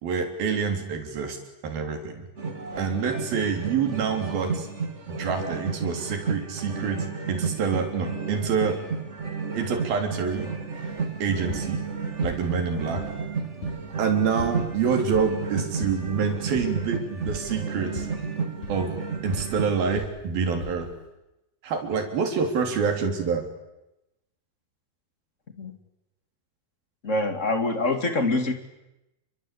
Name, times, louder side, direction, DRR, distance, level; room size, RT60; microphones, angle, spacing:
voice 1, 0.0-1.4 1.6-2.3 2.8-4.7 5.1-8.8 9.5-10.5 11.2-11.8 12.2-13.0 14.0-18.1 18.7-19.0 19.2-20.9 21.6-23.4, right 6 dB, 75° right, 5 dB, 5.2 m, -27 dB
sound 1, 2.4-20.0, right 5 dB, 25° right, 1.8 m, -32 dB
sound 2, 10.3-21.1, left 2 dB, 55° left, 9.1 m, -41 dB
voice 2, 27.0-28.5, left 2 dB, 25° left, 8 dB, 2.1 m, -25 dB
29.0 x 23.0 x 8.5 m, 0.96 s
omnidirectional pair, 4.2 m